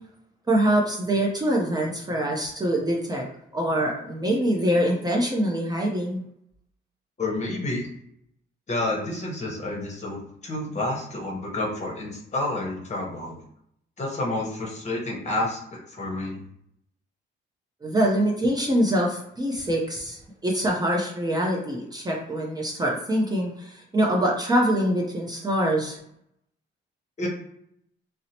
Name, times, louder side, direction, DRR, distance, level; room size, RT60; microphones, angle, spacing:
voice 1, 0.5-3.3 3.5-6.2 17.8-26.0, right 1 dB, 20° right, -1 dB, 0.5 m, -24 dB
voice 2, 7.2-7.9 8.7-13.4 14.0-16.4 27.2-27.3, left 2 dB, 35° left, -2 dB, 0.9 m, -29 dB
2.7 x 2.0 x 2.7 m, 0.73 s
cardioid pair, 90°, 20 cm